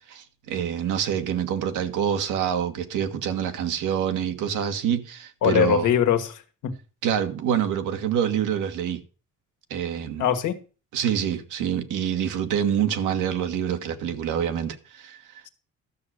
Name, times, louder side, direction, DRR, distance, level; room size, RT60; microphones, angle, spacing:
voice 1, 0.1-5.9 7.0-9.0 9.7-10.3 10.9-15.4, right 9 dB, 85° right, 1.5 m, -26 dB
voice 2, 5.4-6.8 10.2-10.6, left 9 dB, 85° left, 1.5 m, -22 dB
12.5 x 6.5 x 6.4 m
cardioid pair, 90°, 30 cm